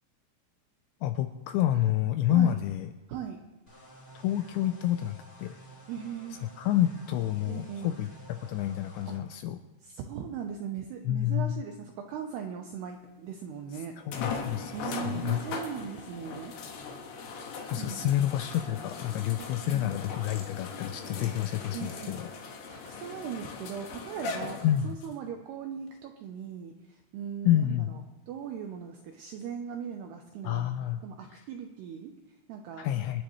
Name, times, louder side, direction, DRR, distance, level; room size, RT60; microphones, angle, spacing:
voice 1, 1.0-2.9 4.2-5.6 6.6-9.6 11.1-11.6 14.1-15.4 17.7-22.3 24.6-25.0 27.5-27.9 30.4-31.0 32.8-33.2, left 12 dB, 85° left, 8 dB, 2.6 m, -28 dB
voice 2, 2.3-2.6 3.1-3.4 5.9-6.4 7.5-8.0 9.8-14.0 14.7-16.5 17.8-18.2 19.4-20.0 21.7-22.2 22.7-28.0 28.3-32.9, right 7 dB, 80° right, 4 dB, 2.3 m, -39 dB
sound 1, 3.7-9.2, right 1 dB, 20° left, 1.9 m, -51 dB
sound 2, 13.0-13.1 14.1-25.1 25.9-26.0 29.4-29.5, left 4 dB, 65° left, 3.1 m, -39 dB
26.5 x 10.5 x 3.1 m, 1.1 s
omnidirectional pair, 5.7 m